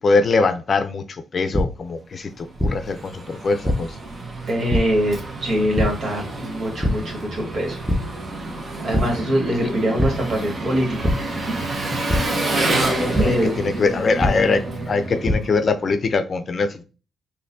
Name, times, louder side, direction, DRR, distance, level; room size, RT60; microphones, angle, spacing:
voice 1, 0.0-4.0 9.6-9.7 12.8-16.8, left 4 dB, 50° left, 0.5 m, -22 dB
sound 1, 1.5-1.6 2.6-2.7 3.7-3.8 4.7-4.8 5.8-5.9 6.8-6.9 7.4-7.5 7.9-8.0 8.9-9.0 10.0-10.1 11.0-11.1 12.1-12.2 13.1-13.2 14.2-14.3 15.0-15.3, equal, 5° right, 0.8 m, -20 dB
Engine, 2.3-15.9, right 2 dB, 45° right, 1.2 m, -28 dB
voice 2, 4.5-7.8 8.8-11.1 11.9-12.0 13.2-13.5, equal, 60° right, 1.9 m, -23 dB
4.0 x 2.7 x 2.7 m
supercardioid pair, 50°, 0 cm